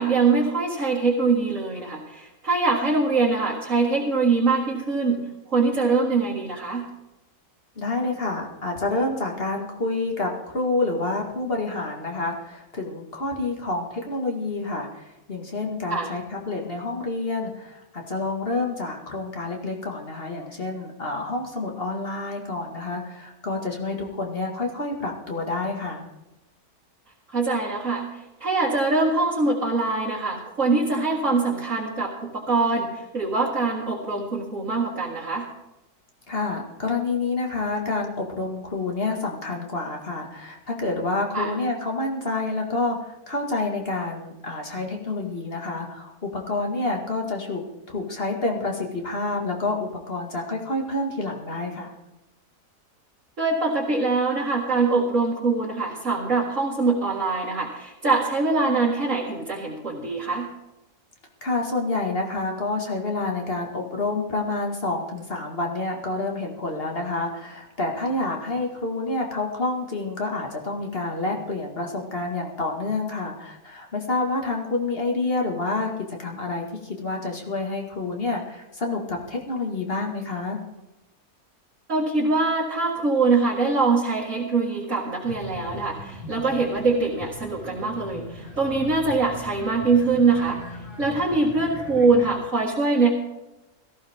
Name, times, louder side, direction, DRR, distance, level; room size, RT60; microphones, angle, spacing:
voice 1, 0.0-5.2 5.5-6.9 15.9-16.1 27.3-28.1 28.4-32.9 33.1-35.4 41.3-41.5 53.4-60.5 81.9-90.6 91.0-93.1, right 3 dB, 50° right, -5 dB, 2.3 m, -23 dB
voice 2, 7.8-14.9 15.3-26.1 36.3-51.9 61.4-75.9 76.2-80.6, left 2 dB, 35° left, 1 dB, 2.1 m, -28 dB
sound 1, 85.2-92.4, left 2 dB, 75° left, 2.4 m, -40 dB
17.5 x 14.5 x 3.6 m, 0.96 s
omnidirectional pair, 1.7 m